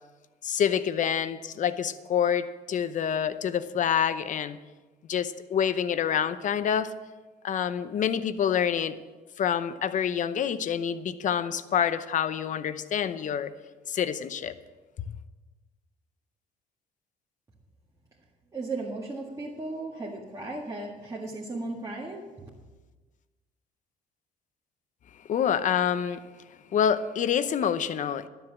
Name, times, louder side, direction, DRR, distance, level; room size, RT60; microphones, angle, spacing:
voice 1, 0.4-4.6 5.1-6.9 7.4-8.9 9.4-13.5 13.9-14.6 25.3-26.2 26.7-28.3, left 8 dB, 50° left, 12 dB, 0.7 m, -27 dB
voice 2, 18.5-22.2, right 2 dB, 20° right, -5 dB, 1.9 m, -35 dB
12.0 x 7.8 x 7.2 m, 1.3 s
cardioid pair, 110°, 17 cm